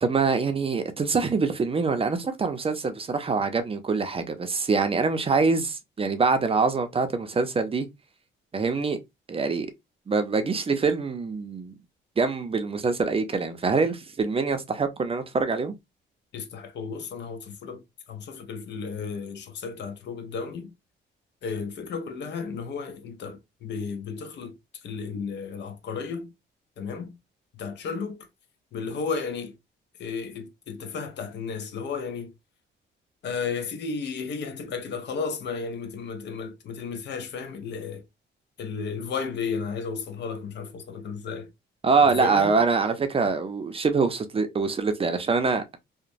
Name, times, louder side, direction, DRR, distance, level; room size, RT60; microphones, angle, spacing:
voice 1, 0.0-7.9 8.5-9.0 9.3-9.7 10.1-11.7 12.2-15.8 41.8-45.8, right 4 dB, 30° right, 0.5 m, -24 dB
voice 2, 16.3-20.7 21.4-24.6 24.8-26.3 26.8-27.1 27.5-28.3 28.7-29.5 30.0-32.3 33.2-38.0 38.6-41.5 42.0-42.6, left 5 dB, 60° left, 0.6 m, -33 dB
2.9 x 2.1 x 2.5 m
cardioid pair, 90°, 20 cm